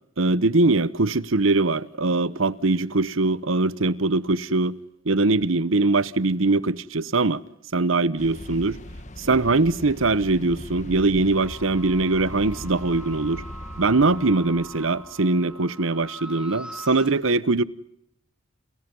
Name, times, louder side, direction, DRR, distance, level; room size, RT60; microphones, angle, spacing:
voice 1, 0.2-4.8 5.1-7.4 7.7-8.8 9.2-13.4 13.8-17.6, right 3 dB, 75° right, 1.0 m, -22 dB
sound 1, 8.2-15.4, left 1 dB, 35° left, 1.6 m, -40 dB
sound 2, 11.4-17.1, right 1 dB, 5° right, 2.7 m, -42 dB
29.5 x 29.5 x 5.5 m
head